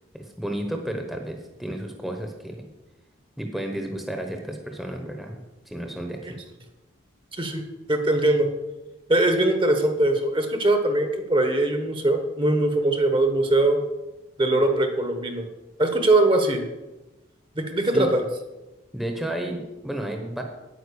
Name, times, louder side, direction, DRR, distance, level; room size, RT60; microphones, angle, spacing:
voice 1, 0.1-2.7 3.4-5.4 5.7-6.4 17.9-18.1 18.9-20.4, right 1 dB, ahead, 3 dB, 1.0 m, -32 dB
voice 2, 7.3-8.5 9.1-13.8 14.4-15.5 15.8-16.6 17.6-18.2, right 2 dB, 25° right, 6 dB, 1.1 m, -21 dB
9.4 x 9.1 x 6.8 m, 1.1 s
head